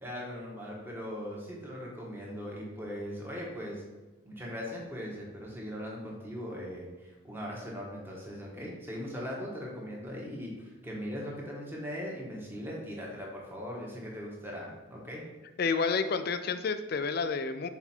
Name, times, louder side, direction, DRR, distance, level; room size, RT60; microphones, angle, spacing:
voice 1, 0.0-3.8 4.2-15.2, equal, 10° right, -3 dB, 1.3 m, -39 dB
voice 2, 15.6-17.7, left 5 dB, 50° left, 10 dB, 0.4 m, -30 dB
5.9 x 4.5 x 4.4 m, 1.2 s
head